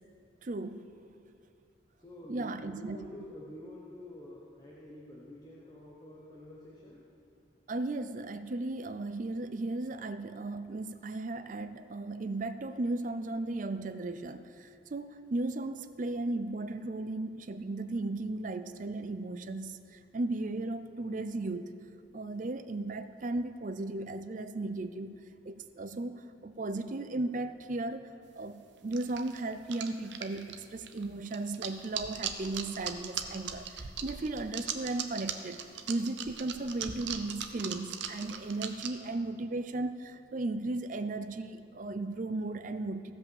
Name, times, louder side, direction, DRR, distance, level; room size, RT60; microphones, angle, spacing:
voice 1, 0.4-1.0 2.3-3.0 7.7-21.7 22.1-25.2 25.4-26.2 26.4-28.1 28.4-35.6 35.9-43.1, right 2 dB, 40° right, 11 dB, 0.5 m, -36 dB
voice 2, 2.0-7.1, left 1 dB, 20° left, -5 dB, 1.1 m, -48 dB
sound 1, 28.9-38.9, right 8 dB, 70° right, 0.8 m, -38 dB
15.0 x 5.6 x 7.2 m, 2.4 s
head